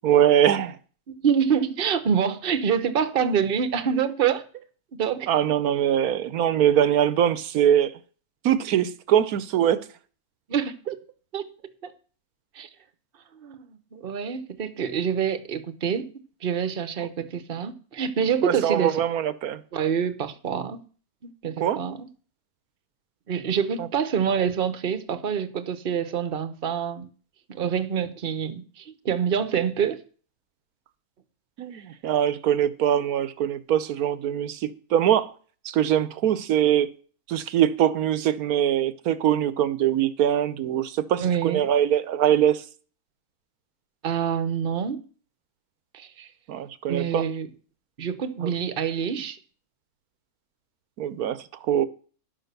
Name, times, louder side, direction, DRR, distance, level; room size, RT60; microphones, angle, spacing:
voice 1, 0.0-0.8 5.3-7.9 8.4-9.8 18.4-19.6 21.6-21.8 23.8-23.9 31.6-35.3 35.6-36.9 37.3-42.6 46.5-47.3 48.4-48.5 51.0-51.9, right 10 dB, 80° right, 1.3 m, -22 dB
voice 2, 1.1-4.4 4.9-5.3 10.5-11.0 11.3-11.5 11.8-11.9 12.5-12.7 13.4-16.1 16.4-19.0 19.7-20.8 21.2-22.1 23.3-27.1 27.5-30.0 31.7-31.8 41.2-41.7 44.0-45.0 45.9-46.3 46.9-47.5 48.0-49.4, right 7 dB, 45° right, 1.0 m, -26 dB
11.0 x 6.4 x 6.7 m
omnidirectional pair, 1.6 m